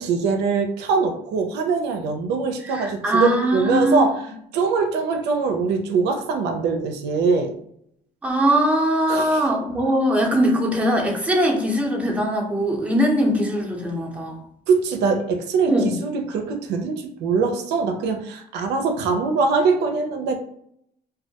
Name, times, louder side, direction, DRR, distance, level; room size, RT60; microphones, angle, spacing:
voice 1, 0.0-4.2 4.5-7.5 9.1-9.5 14.7-20.3, right 4 dB, 85° right, 5 dB, 0.4 m, -22 dB
voice 2, 2.6-4.1 8.2-14.4 15.7-16.0, equal, 10° right, -1 dB, 0.6 m, -21 dB
2.2 x 2.1 x 2.7 m, 0.71 s
cardioid pair, 110°, 17 cm